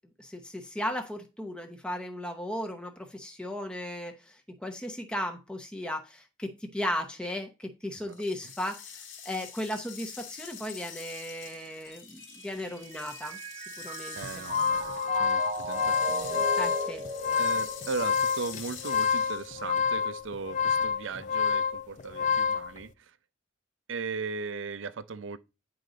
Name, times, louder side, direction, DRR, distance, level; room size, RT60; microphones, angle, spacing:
voice 1, 0.2-9.0 9.2-14.4 16.6-17.0, left 1 dB, 5° left, 0.7 m, -36 dB
sound 1, 8.1-19.7, left 7 dB, 80° left, 1.8 m, -46 dB
Mallet percussion, 11.9-18.4, right 2 dB, 25° right, 0.8 m, -38 dB
voice 2, 14.1-16.5 17.4-23.2 23.9-25.4, right 4 dB, 70° right, 0.5 m, -38 dB
sound 2, 14.2-22.7, left 6 dB, 40° left, 0.4 m, -28 dB
9.2 x 3.8 x 5.0 m
head